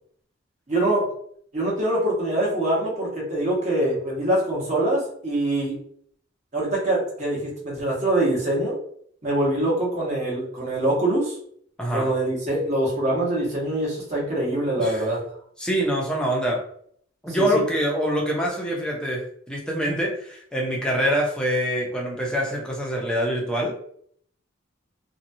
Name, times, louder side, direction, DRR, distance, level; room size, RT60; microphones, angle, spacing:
voice 1, 0.7-1.0 1.5-5.8 6.5-8.7 9.2-11.4 11.9-15.2 17.4-17.5, right 1 dB, 35° right, -5 dB, 1.1 m, -24 dB
voice 2, 15.6-16.6 17.2-23.7, equal, 5° left, -2 dB, 0.6 m, -25 dB
2.8 x 2.2 x 2.6 m, 0.63 s
head